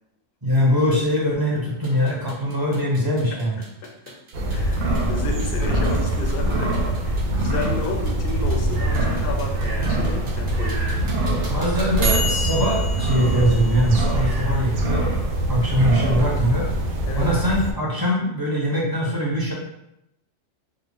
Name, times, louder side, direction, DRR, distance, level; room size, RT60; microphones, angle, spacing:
voice 1, 0.4-3.6 11.5-15.1 15.5-16.7 17.2-19.5, equal, 30° right, -5 dB, 0.4 m, -22 dB
sound 1, 1.7-14.5, right 1 dB, 65° right, 1.0 m, -34 dB
voice 2, 3.3-4.2 4.5-10.9 11.3-11.5 17.1-17.3, left 3 dB, 60° left, 3 dB, 0.6 m, -32 dB
sound 2, 4.3-17.7, right 1 dB, 85° right, 1.0 m, -23 dB
3.7 x 2.0 x 3.4 m, 0.84 s
omnidirectional pair, 1.4 m